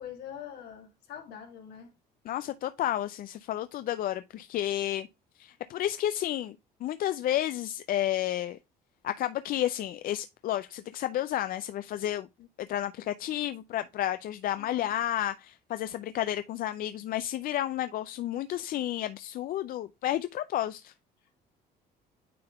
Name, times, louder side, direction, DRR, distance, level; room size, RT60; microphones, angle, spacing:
voice 1, 0.0-1.9 14.6-14.9, left 9 dB, 75° left, 2.1 m, -44 dB
voice 2, 2.3-5.1 5.4-6.6 6.8-8.6 9.0-12.3 12.6-20.9, left 12 dB, 60° left, 0.4 m, -31 dB
9.3 x 3.5 x 3.4 m
cardioid pair, 110°, 17 cm